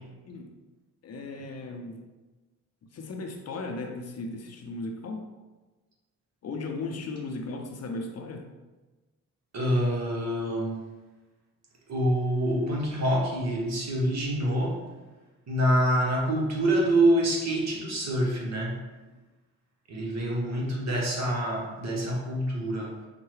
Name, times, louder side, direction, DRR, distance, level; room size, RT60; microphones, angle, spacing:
voice 1, 1.0-2.1 2.9-5.3 6.4-8.5, left 3 dB, 50° left, 4 dB, 0.6 m, -36 dB
voice 2, 9.5-10.8 11.9-14.8 15.5-18.8 19.9-22.9, right 1 dB, 55° right, -2 dB, 1.2 m, -26 dB
5.5 x 2.2 x 3.1 m, 1.2 s
cardioid pair, 90°, 32 cm